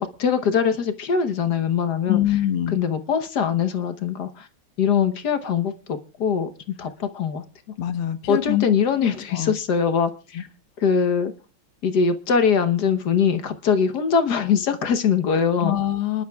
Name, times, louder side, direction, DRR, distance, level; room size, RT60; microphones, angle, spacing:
voice 1, 0.0-2.2 2.7-4.5 4.8-6.5 6.8-7.4 8.3-10.5 10.8-11.3 11.8-15.8, left 6 dB, 55° left, 1.4 m, -22 dB
voice 2, 2.1-2.8 7.8-8.7 9.3-9.6 10.4-10.5 15.6-16.2, left 12 dB, 80° left, 2.0 m, -24 dB
29.0 x 11.5 x 2.3 m
omnidirectional pair, 2.4 m